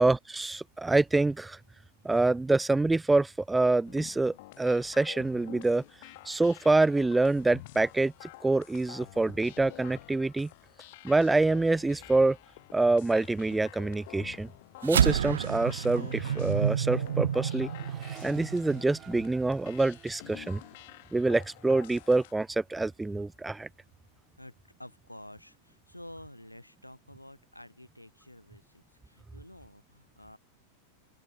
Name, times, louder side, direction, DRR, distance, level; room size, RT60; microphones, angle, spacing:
voice 1, 0.0-1.6 2.0-5.8 6.3-8.1 8.4-10.5 11.0-12.4 12.7-14.5 14.8-17.7 18.2-20.6 21.1-23.7, right 2 dB, 10° right, 0.5 m, -26 dB
sound 1, 3.8-22.3, left 21 dB, 50° left, 2.8 m, -49 dB
sound 2, 14.8-19.5, right 9 dB, 65° right, 0.8 m, -29 dB
Accelerating revving vroom, 16.6-23.0 23.3-23.9, right 9 dB, 25° right, 2.9 m, -55 dB
voice 2, 24.8-30.4, left 1 dB, 85° left, 4.7 m, -50 dB
open air
figure-of-eight pair, 90°, 0 cm